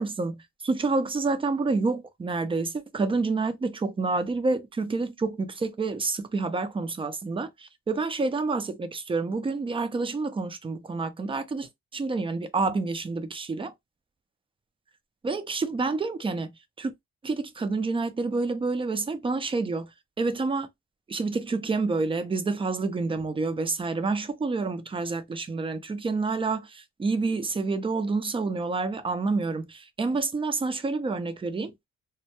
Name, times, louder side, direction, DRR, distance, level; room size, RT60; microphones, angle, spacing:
voice 1, 0.0-13.7 15.2-16.5 16.8-16.9 17.2-19.9 20.2-20.7 21.1-31.7, right 3 dB, 20° right, 0.4 m, -28 dB
2.1 x 2.1 x 2.8 m
cardioid pair, 90°, 30 cm